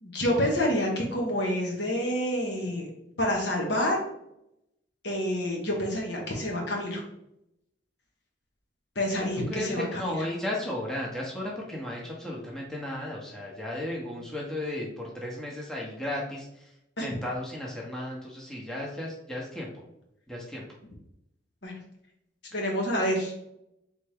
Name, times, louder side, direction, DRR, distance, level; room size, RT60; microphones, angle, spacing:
voice 1, 0.0-2.9 3.2-4.0 5.0-7.0 8.9-10.3 17.0-17.1 21.6-21.7 22.5-23.3, equal, 70° left, -1 dB, 1.2 m, -28 dB
voice 2, 9.5-16.5 17.0-19.7 20.3-20.6, left 1 dB, 5° left, -3 dB, 0.8 m, -34 dB
4.1 x 3.3 x 3.5 m, 0.81 s
head